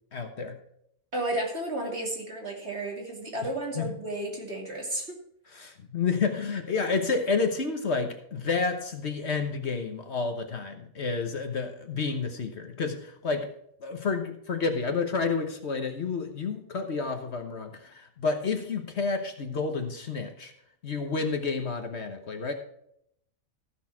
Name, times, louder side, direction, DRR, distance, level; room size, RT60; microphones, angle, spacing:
voice 1, 0.1-0.6 3.8-3.9 5.5-13.5 13.8-20.5 20.8-22.5, left 4 dB, 55° left, 6 dB, 1.3 m, -30 dB
voice 2, 1.1-5.1, right 1 dB, 50° right, -1 dB, 2.8 m, -32 dB
15.0 x 6.5 x 4.6 m, 0.72 s
omnidirectional pair, 1.4 m